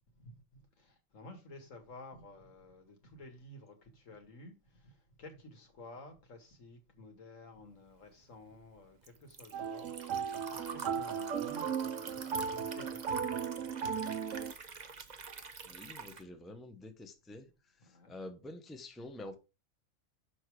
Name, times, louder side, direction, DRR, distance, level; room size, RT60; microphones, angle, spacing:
voice 1, 0.1-13.6 14.6-14.7 17.8-18.1, left 2 dB, 70° left, 2.0 m, -53 dB
Liquid, 8.0-16.2, right 5 dB, 35° right, 0.8 m, -47 dB
sound 1, 9.5-14.5, right 7 dB, 70° right, 1.2 m, -36 dB
voice 2, 15.6-17.4 18.1-19.4, left 1 dB, ahead, 0.8 m, -47 dB
6.7 x 5.4 x 4.7 m
omnidirectional pair, 1.4 m